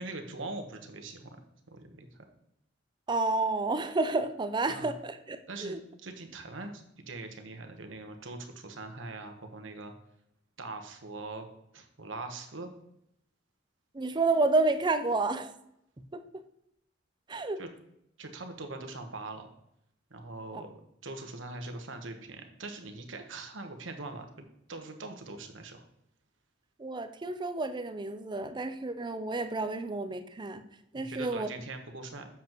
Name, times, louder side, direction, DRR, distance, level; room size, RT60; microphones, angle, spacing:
voice 1, 0.0-1.4 1.7-2.2 4.7-4.9 5.5-5.8 6.0-9.9 10.6-11.5 11.7-12.7 17.6-17.7 18.2-19.5 20.1-20.7 21.0-24.3 24.7-25.8 30.9-32.3, right 2 dB, 80° right, 5 dB, 1.1 m, -42 dB
voice 2, 3.1-5.8 13.9-15.5 16.1-16.2 17.3-17.6 20.5-20.6 26.8-30.6 30.9-31.5, right 3 dB, 25° right, 9 dB, 0.5 m, -30 dB
7.7 x 7.1 x 3.0 m, 0.78 s
head